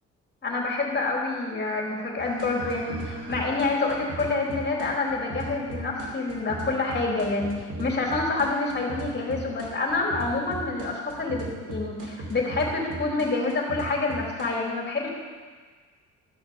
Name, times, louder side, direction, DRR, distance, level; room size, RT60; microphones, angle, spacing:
voice 1, 0.4-15.1, left 3 dB, 35° left, -2 dB, 3.7 m, -27 dB
sound 1, 2.2-14.5, right 3 dB, 80° right, 2.5 m, -38 dB
13.5 x 6.9 x 7.2 m, 1.5 s
cardioid pair, 90°, 30 cm